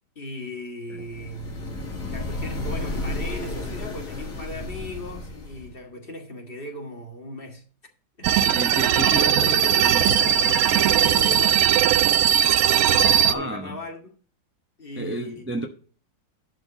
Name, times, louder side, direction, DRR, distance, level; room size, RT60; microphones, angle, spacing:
voice 1, 0.2-7.6 8.2-11.8 12.9-14.1 14.8-15.4, left 1 dB, 30° left, 1.9 m, -38 dB
sound 1, 1.0-5.8, left 2 dB, 50° left, 2.5 m, -32 dB
sound 2, 8.2-13.3, right 9 dB, 65° right, 1.0 m, -19 dB
voice 2, 8.5-10.6 13.2-13.7 15.0-15.7, right 1 dB, 10° right, 0.5 m, -32 dB
11.0 x 4.5 x 6.9 m
omnidirectional pair, 1.9 m